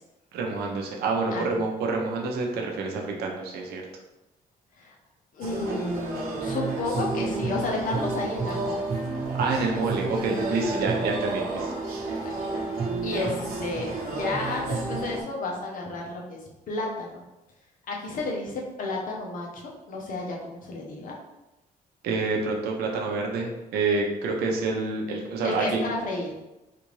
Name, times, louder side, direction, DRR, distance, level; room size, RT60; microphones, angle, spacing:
voice 1, 0.3-3.8 9.3-11.7 22.0-25.8, right 3 dB, 90° right, 0 dB, 0.7 m, -27 dB
voice 2, 1.3-1.7 4.8-4.9 5.3-8.8 12.2-12.6 13.0-16.4 16.7-17.2 17.9-21.1 25.4-26.3, left 2 dB, 60° left, -1 dB, 0.9 m, -32 dB
sound 1, 5.4-15.2, right 3 dB, 65° right, 1.0 m, -30 dB
3.5 x 2.5 x 3.1 m, 0.98 s
cardioid pair, 115°, 16 cm